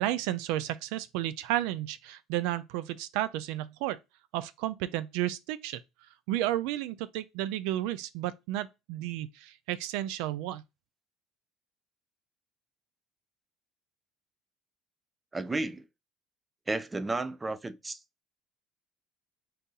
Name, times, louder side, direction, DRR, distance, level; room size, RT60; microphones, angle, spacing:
voice 1, 0.0-4.0 4.3-5.8 6.3-10.6, right 14 dB, 80° right, 0.3 m, -32 dB
voice 2, 15.3-15.8 16.7-18.0, right 2 dB, 15° right, 0.4 m, -32 dB
4.0 x 2.7 x 3.7 m
supercardioid pair, 110°, 0 cm